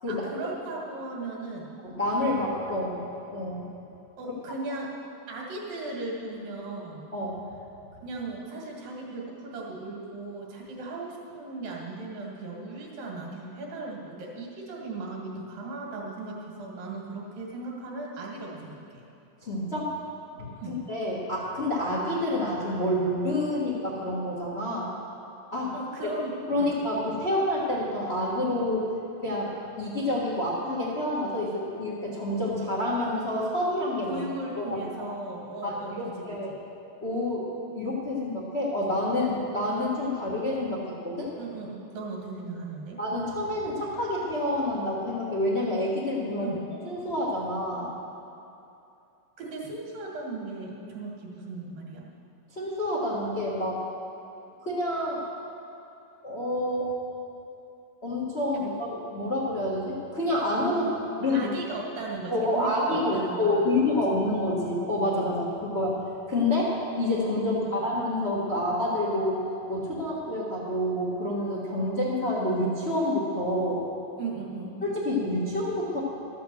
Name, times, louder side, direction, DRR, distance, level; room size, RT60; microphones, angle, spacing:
voice 1, 0.1-1.8 4.2-5.0 5.3-7.1 8.0-19.0 20.6-20.8 25.7-26.3 26.6-26.7 34.1-36.6 41.4-43.0 46.4-46.7 49.4-52.0 60.7-63.8 67.4-67.9 74.2-74.8, right 2 dB, 80° right, -2 dB, 3.6 m, -37 dB
voice 2, 1.8-3.0 3.3-3.7 7.1-7.4 19.4-20.0 20.4-24.9 25.5-25.7 26.5-28.9 29.2-34.2 34.6-34.9 35.6-36.5 37.0-41.3 43.0-46.5 46.8-47.9 52.5-53.8 54.6-55.2 56.2-56.9 58.0-60.9 61.2-61.5 62.3-66.0 66.3-69.4 69.7-73.8 74.8-76.0, left 1 dB, 50° left, -5 dB, 0.7 m, -28 dB
13.0 x 7.0 x 7.7 m, 2.7 s
omnidirectional pair, 3.9 m